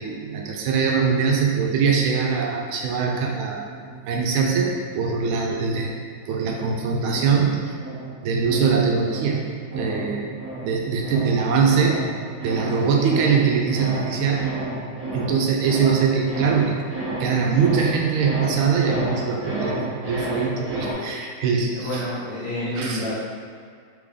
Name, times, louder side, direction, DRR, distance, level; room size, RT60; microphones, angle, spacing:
voice 1, 0.0-3.7 4.1-5.9 6.3-7.7 8.2-9.4 9.7-10.3 10.6-12.0 12.4-14.5 15.1-16.8 17.2-22.0 22.8-23.1, right 5 dB, 80° right, 0 dB, 1.5 m, -22 dB
sound 1, 3.2-5.3 5.7-20.9, right 1 dB, 10° right, 1.1 m, -32 dB
voice 2, 21.7-23.1, equal, 55° left, -8 dB, 1.3 m, -28 dB
4.2 x 3.3 x 3.6 m, 2.1 s
omnidirectional pair, 2.3 m